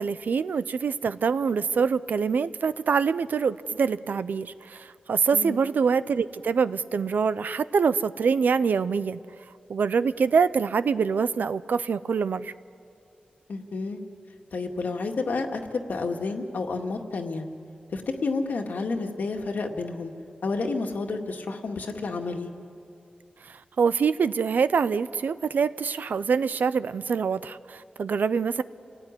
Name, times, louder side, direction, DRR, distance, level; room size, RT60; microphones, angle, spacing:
voice 1, 0.0-9.2 9.7-12.5 23.4-28.6, right 5 dB, 85° right, 14 dB, 0.6 m, -25 dB
voice 2, 13.5-14.0 14.5-17.4 17.9-20.1 20.4-22.5, left 3 dB, 80° left, 3 dB, 2.0 m, -30 dB
28.5 x 18.0 x 9.8 m, 2.5 s
wide cardioid pair, 105°, 3 cm